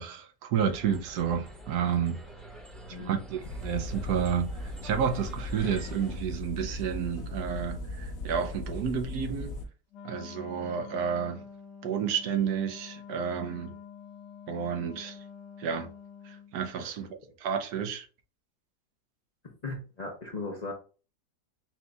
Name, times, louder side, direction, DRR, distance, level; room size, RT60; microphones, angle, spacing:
voice 1, 0.0-2.2 3.0-9.6 10.0-11.4 11.8-13.7 14.5-15.2 15.6-15.9 16.2-17.1 17.4-18.1, right 7 dB, 75° right, 1.2 m, -31 dB
sound 1, 0.5-6.2, right 1 dB, ahead, 0.7 m, -47 dB
voice 2, 2.7-3.1 16.8-16.9 19.6-20.7, left 3 dB, 40° left, 0.6 m, -38 dB
sound 2, 3.4-9.7, left 1 dB, 60° left, 1.2 m, -37 dB
Wind instrument woodwind instrument, 9.9-16.5, left 7 dB, 90° left, 1.3 m, -47 dB
4.4 x 2.3 x 3.9 m
omnidirectional pair, 1.7 m